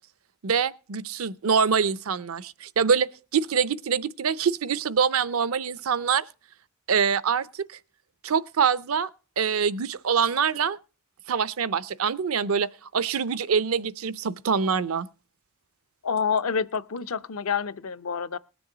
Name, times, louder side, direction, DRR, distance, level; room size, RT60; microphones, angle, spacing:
voice 1, 0.4-6.2 6.9-7.6 8.2-9.1 9.4-10.8 11.3-15.1, right 6 dB, 70° right, 0.6 m, -25 dB
voice 2, 16.0-18.4, left 6 dB, 70° left, 0.6 m, -28 dB
20.0 x 7.0 x 3.8 m
head